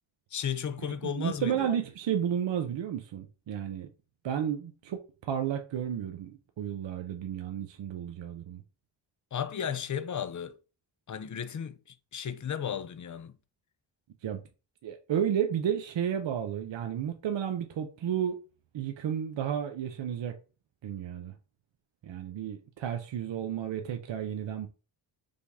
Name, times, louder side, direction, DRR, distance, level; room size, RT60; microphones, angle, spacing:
voice 1, 0.3-1.7 9.3-10.6 11.1-11.8 12.1-13.3, left 8 dB, 40° left, 0.5 m, -34 dB
voice 2, 1.0-3.9 4.2-8.6 14.2-14.4 14.8-18.4 18.7-20.3 20.8-21.3 22.0-24.7, right 9 dB, 70° right, 0.7 m, -32 dB
5.1 x 2.6 x 3.5 m
wide cardioid pair, 90°, 45 cm